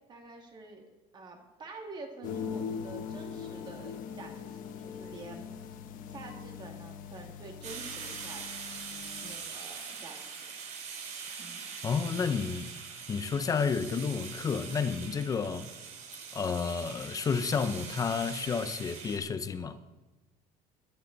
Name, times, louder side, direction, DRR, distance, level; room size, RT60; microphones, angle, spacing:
voice 1, 0.1-0.9 1.1-5.5 6.1-8.5 9.2-10.4 11.4-11.6, right 3 dB, 25° right, 2.0 m, -47 dB
sound 1, 2.2-9.3, left 7 dB, 55° left, 1.2 m, -41 dB
sound 2, 7.6-19.2, right 6 dB, 45° right, 2.7 m, -43 dB
voice 2, 11.8-12.7 13.1-15.7 16.3-19.8, left 5 dB, 20° left, 0.5 m, -31 dB
21.0 x 10.0 x 3.9 m
cardioid pair, 170°, 17 cm